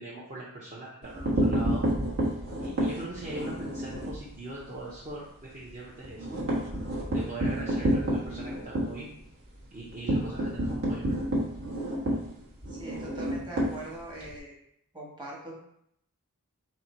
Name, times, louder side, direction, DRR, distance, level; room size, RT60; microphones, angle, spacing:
voice 1, 0.0-1.8 2.6-6.3 7.1-9.1 9.7-11.2, right 2 dB, 35° right, -6 dB, 0.7 m, -41 dB
sound 1, 1.0-4.2 4.6-4.8 5.1-5.2 5.5-14.4, right 1 dB, 65° right, 1.3 m, -29 dB
voice 2, 12.7-14.5 14.9-15.6, right 1 dB, 20° right, -4 dB, 1.2 m, -42 dB
4.4 x 2.6 x 4.3 m, 0.74 s
head